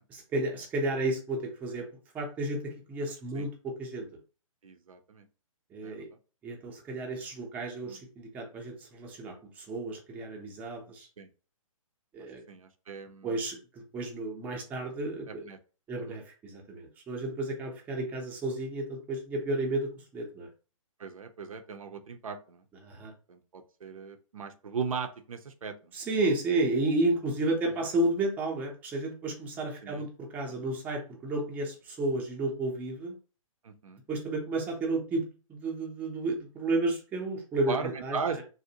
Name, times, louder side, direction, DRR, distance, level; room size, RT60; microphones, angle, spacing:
voice 1, 0.1-1.9 2.1-4.1 5.7-6.1 6.4-11.1 12.1-12.4 13.2-15.5 15.9-20.5 22.8-23.1 25.9-33.2 34.1-35.2 35.5-38.2, right 2 dB, 10° right, 0 dB, 0.4 m, -32 dB
voice 2, 4.6-5.2 5.8-6.1 7.8-8.0 11.2-11.3 12.5-13.4 15.3-15.6 16.1-16.2 21.0-22.6 23.3-25.9 29.8-30.0 33.6-34.0 37.7-38.4, right 5 dB, 75° right, 8 dB, 0.5 m, -38 dB
2.6 x 2.0 x 2.7 m, 0.36 s
figure-of-eight pair, 135°, 18 cm